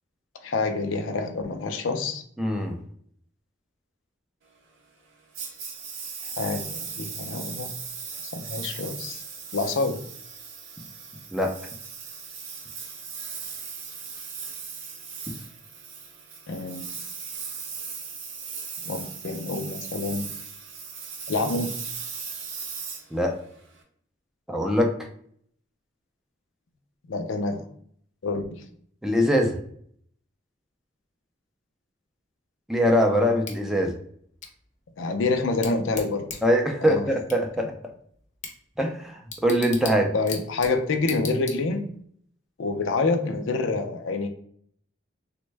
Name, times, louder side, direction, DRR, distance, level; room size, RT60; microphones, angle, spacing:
voice 1, 0.4-2.2 6.4-7.7 8.3-9.2 9.5-10.0 16.5-16.9 18.9-20.3 21.3-21.7 27.1-27.6 28.2-28.6 35.0-36.3 36.8-37.1 40.1-41.9 42.6-44.3, left 3 dB, 80° left, 6 dB, 0.4 m, -27 dB
voice 2, 2.4-2.8 11.3-11.5 23.1-23.3 24.5-24.9 29.0-29.6 32.7-33.9 36.4-37.7 38.8-40.1, equal, 5° right, 2 dB, 0.4 m, -22 dB
Engine, 5.3-23.8, right 6 dB, 75° right, 0.6 m, -38 dB
Bicycle / Tick, 33.4-42.0, left 5 dB, 40° left, 0.6 m, -42 dB
3.4 x 2.1 x 3.2 m, 0.63 s
head